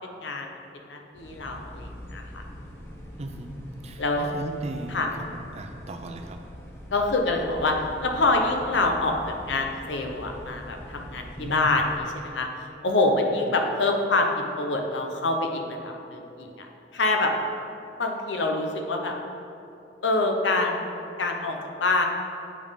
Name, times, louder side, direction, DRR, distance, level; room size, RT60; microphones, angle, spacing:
voice 1, 0.9-2.4 4.0-4.3 4.9-5.1 6.9-7.7 8.0-9.2 9.4-12.5 12.8-16.7 16.9-17.3 18.0-19.1 20.0-22.1, left 2 dB, 85° left, 3 dB, 0.8 m, -26 dB
sound 1, 1.1-12.0, equal, 15° left, 0.9 m, -43 dB
voice 2, 3.2-3.5 3.8-6.4 11.4-11.7, right 1 dB, 35° right, 5 dB, 0.5 m, -37 dB
8.6 x 3.6 x 5.2 m, 2.7 s
head